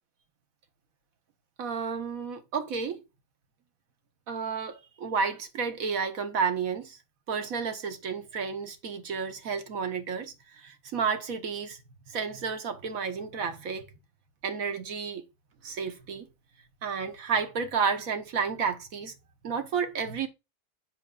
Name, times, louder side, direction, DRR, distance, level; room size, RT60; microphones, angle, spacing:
voice 1, 1.6-3.0 4.3-7.0 7.3-11.8 12.1-13.9 14.4-15.2 15.6-16.3 16.8-19.1 19.4-20.3, right 5 dB, 60° right, 1.5 m, -31 dB
7.8 x 6.2 x 2.4 m
omnidirectional pair, 1.8 m